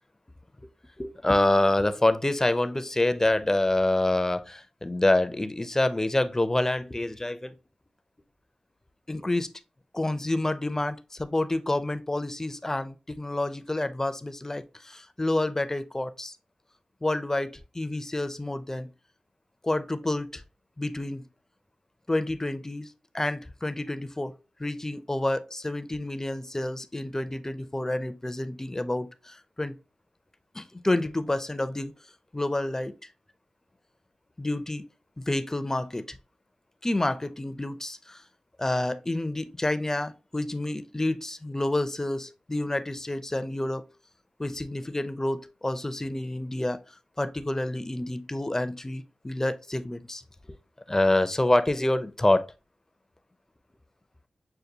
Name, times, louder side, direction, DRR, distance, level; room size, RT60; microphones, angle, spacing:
voice 1, 1.0-7.5 9.1-9.5 9.9-16.3 17.0-18.9 19.6-20.4 20.8-21.3 22.1-22.9 23.1-24.3 24.6-29.7 30.5-31.9 32.3-32.9 34.4-34.8 35.2-36.2 36.8-38.2 38.6-43.8 44.4-46.8 47.2-50.2 50.9-52.5, left 1 dB, 20° left, 0.5 m, -28 dB
6.5 x 2.2 x 2.8 m
cardioid pair, 55°, 2 cm